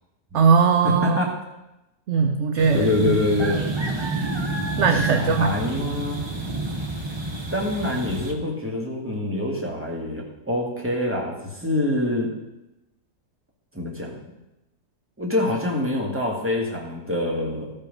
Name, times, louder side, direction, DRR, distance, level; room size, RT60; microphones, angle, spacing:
voice 1, 0.3-1.3 2.1-3.1 4.8-5.5, right 6 dB, 65° right, 7 dB, 0.8 m, -20 dB
voice 2, 0.8-1.3 2.7-3.6 4.8-6.2 7.5-12.3 13.7-14.2 15.2-17.7, left 2 dB, 10° right, -2 dB, 1.8 m, -25 dB
sound 1, 2.6-8.3, right 2 dB, 25° right, 0.6 m, -29 dB
13.5 x 5.5 x 5.3 m, 0.96 s
omnidirectional pair, 1.6 m